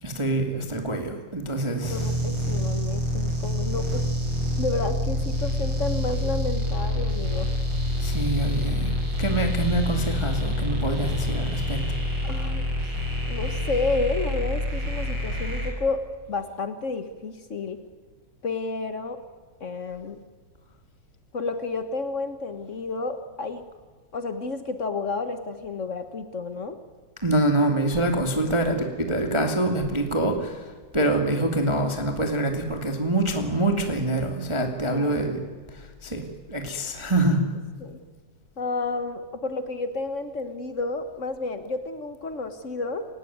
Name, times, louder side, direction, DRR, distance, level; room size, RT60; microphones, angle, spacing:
voice 1, 0.0-2.1 8.0-11.8 27.2-35.4 35.7-37.4, right 1 dB, 10° right, 4 dB, 1.8 m, -25 dB
voice 2, 1.6-4.0 4.6-7.5 12.2-12.7 13.3-16.0 16.3-17.8 18.4-19.2 19.6-20.2 21.3-23.6 24.1-26.8 34.9-35.1 37.8-38.0 38.6-43.0, left 3 dB, 85° left, 9 dB, 0.6 m, -31 dB
sound 1, 1.8-15.7, left 1 dB, 45° right, 6.4 m, -27 dB
29.0 x 17.0 x 9.4 m, 1.4 s
omnidirectional pair, 3.5 m